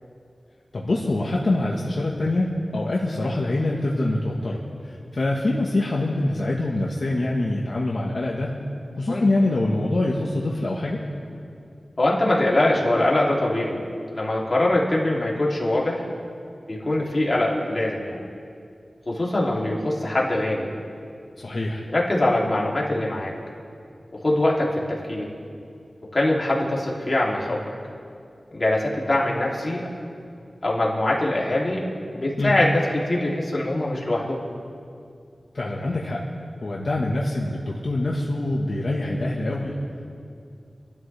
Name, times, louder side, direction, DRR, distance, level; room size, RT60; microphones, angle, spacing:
voice 1, 0.7-8.5 9.0-11.0 21.4-21.8 32.4-32.6 35.5-36.2 36.6-39.7, left 2 dB, 60° left, -3 dB, 1.5 m, -25 dB
voice 2, 12.0-13.8 14.1-16.0 16.7-18.2 19.1-20.7 21.9-23.3 24.2-25.3 26.1-27.6 28.5-29.8 30.6-31.8 32.1-34.4, left 1 dB, 40° left, -4 dB, 3.1 m, -23 dB
28.5 x 12.5 x 3.5 m, 2.4 s
wide cardioid pair, 95°, 0 cm